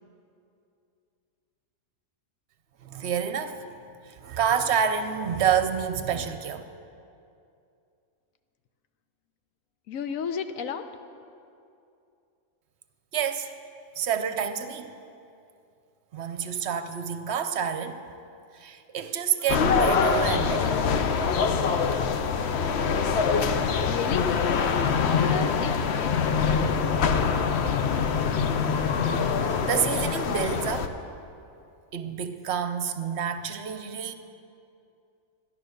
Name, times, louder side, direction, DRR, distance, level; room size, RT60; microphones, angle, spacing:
voice 1, 2.8-3.7 4.0-6.6 13.1-13.5 14.0-14.9 16.1-18.0 18.5-20.9 29.4-30.9 31.9-34.1, right 8 dB, 60° right, 9 dB, 0.9 m, -28 dB
voice 2, 9.9-10.9 23.8-24.3 24.9-26.7, left 7 dB, 80° left, 9 dB, 1.1 m, -33 dB
sound 1, 19.5-30.9, left 6 dB, 60° left, 0.9 m, -24 dB
13.5 x 10.5 x 6.5 m, 2.6 s
omnidirectional pair, 1.4 m